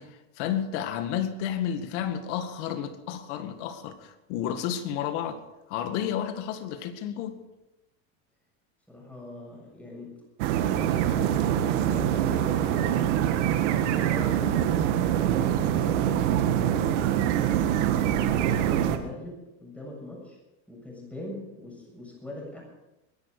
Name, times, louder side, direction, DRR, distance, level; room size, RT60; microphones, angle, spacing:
voice 1, 0.0-5.4 5.7-7.4, left 9 dB, 75° left, 9 dB, 2.0 m, -31 dB
voice 2, 8.9-10.2 10.7-13.0 13.7-17.1 17.8-20.4 20.7-22.6, left 1 dB, 5° left, -2 dB, 7.1 m, -41 dB
sound 1, 10.4-19.0, right 10 dB, 80° right, 1.8 m, -24 dB
22.5 x 11.0 x 4.9 m, 0.97 s
supercardioid pair, 130°, 36 cm